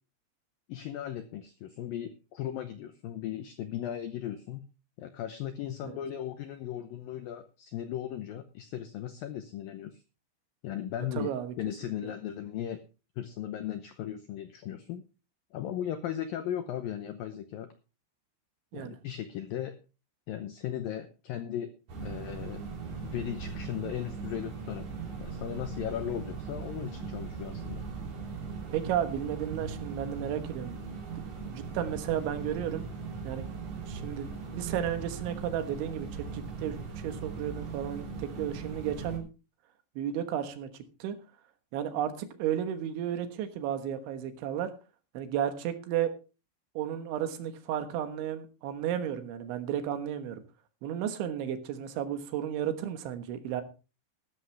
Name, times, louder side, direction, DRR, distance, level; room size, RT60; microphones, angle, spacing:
voice 1, 0.7-4.6 5.0-10.0 10.6-12.9 13.2-15.0 15.5-17.7 18.7-19.8 20.3-21.7 22.0-22.6 23.0-24.9 25.2-27.8, left 11 dB, 80° left, 9 dB, 2.0 m, -37 dB
voice 2, 11.2-11.5 18.7-19.0 28.7-30.8 31.5-32.9 33.2-33.5 33.9-39.3 40.0-40.7 41.0-41.2 41.7-44.7 45.2-46.1 46.8-50.4 50.8-53.6, right 10 dB, 80° right, 8 dB, 3.7 m, -33 dB
sound 1, 21.9-39.2, right 5 dB, 45° right, 4.1 m, -39 dB
14.0 x 13.0 x 3.4 m, 0.32 s
omnidirectional pair, 5.3 m